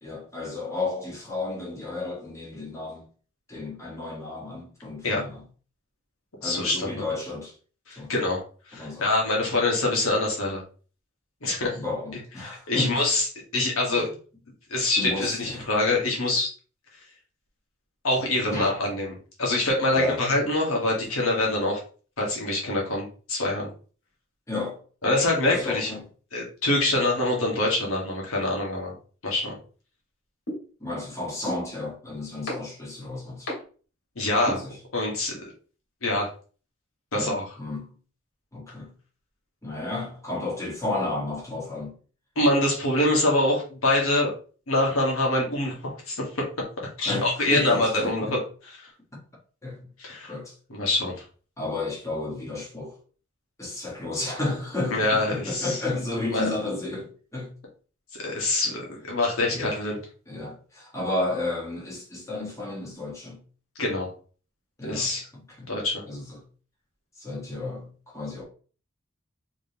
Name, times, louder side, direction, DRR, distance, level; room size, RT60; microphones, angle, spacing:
voice 1, 0.0-3.1 3.5-5.4 6.4-7.5 8.0-8.1 8.7-9.1 11.7-13.1 13.9-14.1 15.0-15.7 18.5-18.7 19.9-20.2 24.5-24.8 25.4-26.1 30.8-33.5 34.4-34.8 37.1-37.9 38.5-38.9 39.6-41.9 47.0-48.4 49.6-49.8 50.2-50.5 51.6-53.0 53.6-57.5 59.5-59.8 60.3-63.4 64.8-65.1 65.6-65.7 66.1-66.4 67.2-68.4, left 2 dB, 15° left, 1.3 m, -32 dB
voice 2, 6.4-7.0 7.9-8.4 8.7-10.6 11.4-11.8 12.4-13.3 13.5-14.1 14.7-16.5 18.0-21.8 22.2-23.7 25.0-25.9 26.3-28.9 29.2-29.6 34.1-34.6 34.9-35.5 36.0-36.3 37.1-37.5 42.3-44.3 44.7-46.4 47.0-48.8 50.0-50.3 50.7-51.1 54.9-55.8 56.3-56.5 58.1-60.0 63.8-64.1 64.8-65.3 65.7-66.0, left 2 dB, 85° left, 1.4 m, -25 dB
sound 1, 30.5-30.6 31.5-31.6 32.5-32.6 33.5-33.6 34.5-34.6, equal, 65° left, 2.0 m, -30 dB
3.5 x 3.2 x 2.8 m
head